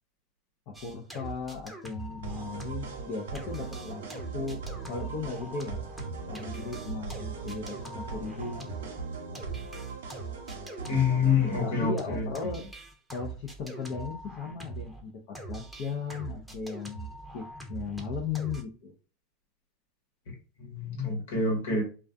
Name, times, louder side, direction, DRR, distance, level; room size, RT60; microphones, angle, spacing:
voice 1, 0.7-4.6 4.9-5.8 6.3-9.0 11.6-12.6 13.1-18.9, left 5 dB, 55° left, -1 dB, 0.6 m, -37 dB
sound 1, 0.7-3.1 3.3-15.0 15.3-18.6, right 3 dB, ahead, 0.7 m, -42 dB
sound 2, 2.2-11.8, right 4 dB, 85° right, 0.7 m, -40 dB
voice 2, 10.9-12.3 20.6-21.8, left 5 dB, 80° left, 1 dB, 1.2 m, -27 dB
2.3 x 2.3 x 2.5 m, 0.36 s
hypercardioid pair, 100°, 0 cm